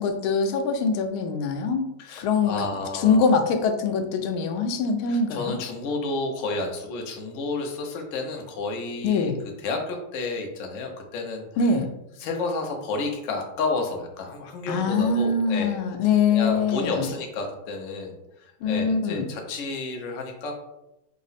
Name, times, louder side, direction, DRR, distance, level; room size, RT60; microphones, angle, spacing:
voice 1, 0.0-2.5 2.9-5.6 9.0-9.4 11.6-11.9 14.7-17.1 18.6-19.3, left 4 dB, 85° left, 5 dB, 1.4 m, -23 dB
voice 2, 2.0-3.2 5.1-9.3 9.6-11.5 12.2-15.8 16.3-20.6, left 3 dB, 70° left, 2 dB, 0.7 m, -31 dB
4.7 x 2.0 x 4.0 m, 0.90 s
omnidirectional pair, 2.2 m